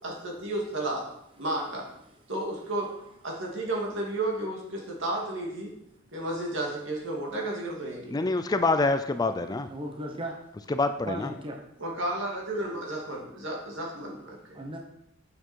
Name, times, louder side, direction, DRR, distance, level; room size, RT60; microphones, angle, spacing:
voice 1, 0.0-1.1 1.4-1.9 2.3-2.9 3.2-5.7 6.1-8.3 11.8-14.6, right 1 dB, 70° right, -2 dB, 2.7 m, -32 dB
voice 2, 8.1-9.7 10.7-11.3, left 3 dB, 20° left, 9 dB, 0.4 m, -26 dB
voice 3, 9.7-10.3 11.1-11.6 14.5-14.8, right 1 dB, 25° right, 1 dB, 1.0 m, -36 dB
8.8 x 7.3 x 4.6 m, 0.80 s
head